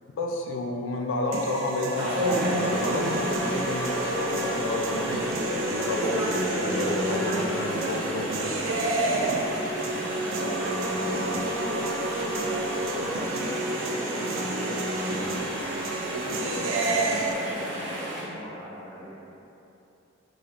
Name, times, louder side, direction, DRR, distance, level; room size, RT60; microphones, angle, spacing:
voice 1, 0.2-5.2 5.6-8.5, left 2 dB, 80° left, 1 dB, 0.4 m, -31 dB
sound 1, 1.3-17.3, right 2 dB, 90° right, 0.5 m, -30 dB
Chatter / Stream, 1.9-18.2, equal, 35° right, 1.0 m, -32 dB
voice 2, 8.6-11.9 12.3-15.5 16.0-19.4, equal, 10° left, -11 dB, 1.1 m, -43 dB
4.9 x 3.4 x 2.5 m, 2.9 s
head